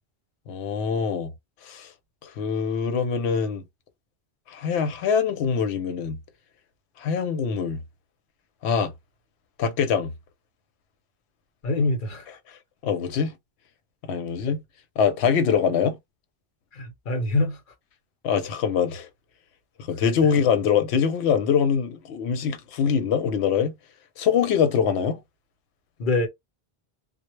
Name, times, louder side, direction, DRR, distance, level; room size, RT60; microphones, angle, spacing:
voice 1, 0.5-1.3 1.6-1.9 2.2-3.6 4.5-6.2 7.0-7.8 8.6-8.9 9.6-10.1 12.8-13.3 14.1-14.6 15.0-16.0 18.2-19.1 19.9-23.7 24.2-25.2, left 7 dB, 85° left, 0.8 m, -23 dB
voice 2, 11.6-12.3 16.7-17.6 26.0-26.3, left 2 dB, 55° left, 0.8 m, -24 dB
2.0 x 2.0 x 3.0 m
omnidirectional pair, 1.1 m